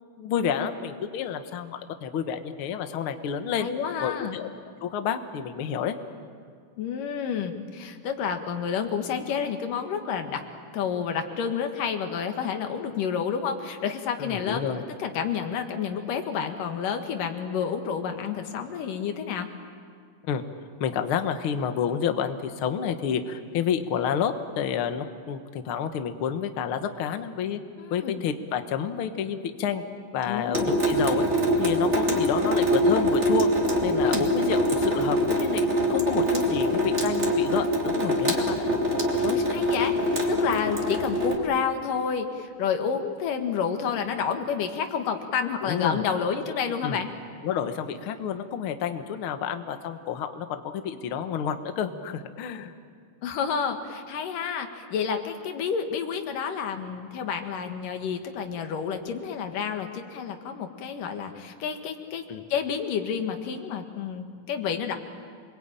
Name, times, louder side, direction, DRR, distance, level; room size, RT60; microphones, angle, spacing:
voice 1, 0.2-3.7 4.0-4.5 4.8-5.9 14.2-14.8 20.3-20.4 20.8-27.6 27.9-29.8 30.1-31.2 31.6-33.5 33.8-38.7 45.6-46.0 46.8-47.0 47.4-52.7 62.3-62.4, left 8 dB, 55° left, 8 dB, 1.7 m, -29 dB
voice 2, 3.6-4.4 6.8-10.4 10.7-19.5 27.8-28.2 30.3-30.8 34.0-34.3 39.2-47.1 53.2-62.2 62.5-64.9, left 7 dB, 90° left, 6 dB, 3.3 m, -30 dB
Water tap faucet / Sink (filling or washing) / Drip, 30.5-41.4, equal, 20° right, 2.6 m, -24 dB
28.5 x 22.0 x 9.0 m, 2.1 s
omnidirectional pair, 3.7 m